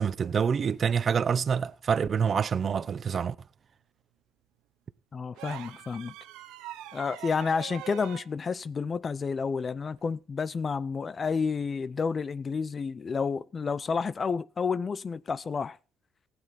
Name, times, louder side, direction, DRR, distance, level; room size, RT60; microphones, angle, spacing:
voice 1, 0.0-3.4, right 6 dB, 45° right, 0.7 m, -26 dB
voice 2, 5.1-6.1 6.9-15.8, left 5 dB, 40° left, 0.5 m, -30 dB
sound 1, 5.4-8.3 10.0-10.2, right 13 dB, 80° right, 0.9 m, -43 dB
16.0 x 9.5 x 4.1 m
supercardioid pair, 65°, 0 cm